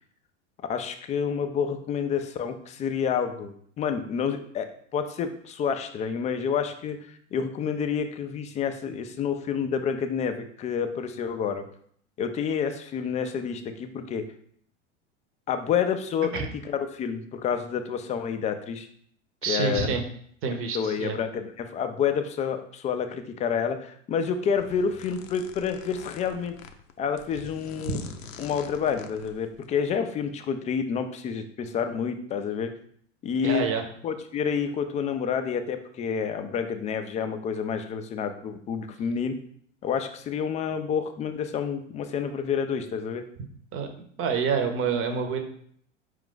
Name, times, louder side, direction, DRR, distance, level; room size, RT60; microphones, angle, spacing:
voice 1, 0.7-11.6 12.2-14.2 15.5-18.9 19.5-19.9 20.7-26.6 27.0-28.0 28.4-32.7 33.2-33.7 34.0-39.4 39.8-43.2, left 7 dB, 20° left, 8 dB, 0.3 m, -29 dB
voice 2, 19.4-20.0 20.4-21.2 33.4-33.8 43.7-43.9 44.2-45.4, right 6 dB, 35° right, 5 dB, 0.8 m, -27 dB
sound 1, 24.4-29.9, left 7 dB, 85° left, 0.5 m, -45 dB
4.7 x 2.5 x 3.8 m, 0.62 s
hypercardioid pair, 85°, 38 cm